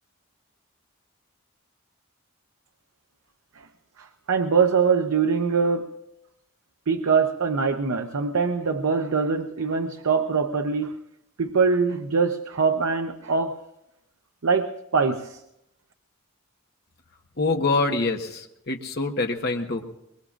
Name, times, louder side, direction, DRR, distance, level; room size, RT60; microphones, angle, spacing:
voice 1, 4.0-6.0 6.9-10.9 11.4-13.6 14.4-15.4, right 5 dB, 80° right, 0.7 m, -23 dB
voice 2, 17.4-19.8, left 3 dB, 50° left, 1.2 m, -25 dB
23.5 x 21.5 x 2.5 m
head